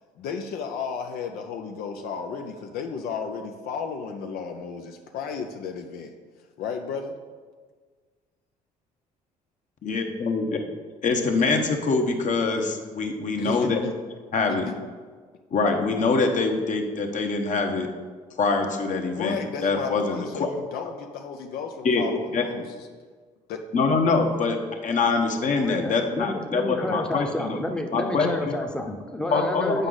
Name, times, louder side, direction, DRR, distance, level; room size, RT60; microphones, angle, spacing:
voice 1, 0.2-6.1 6.6-7.2 13.4-13.9 14.8-14.9 19.2-22.9 23.5-23.6, left 6 dB, 70° left, 4 dB, 0.6 m, -33 dB
voice 2, 9.8-10.5 11.0-13.8 14.3-14.7 15.5-17.9 18.4-20.5 21.8-22.0 22.3-22.4 23.7-27.6 27.9-28.6 29.3-29.9, left 4 dB, 50° left, 4 dB, 1.0 m, -24 dB
voice 3, 25.6-29.9, left 1 dB, 5° left, 3 dB, 0.8 m, -30 dB
8.0 x 4.9 x 3.9 m, 1.5 s
supercardioid pair, 65°, 16 cm